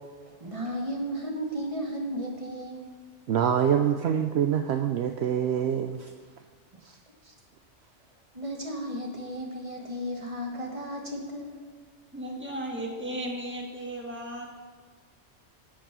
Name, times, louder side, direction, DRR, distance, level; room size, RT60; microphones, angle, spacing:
voice 1, 0.3-2.8 6.8-7.0 7.2-7.3 8.3-11.6, equal, 25° right, 0 dB, 1.5 m, -34 dB
voice 2, 3.3-6.0, right 8 dB, 65° right, 5 dB, 0.8 m, -25 dB
voice 3, 12.1-14.6, right 1 dB, 10° right, -1 dB, 1.5 m, -35 dB
11.5 x 5.1 x 6.8 m, 1.6 s
omnidirectional pair, 1.3 m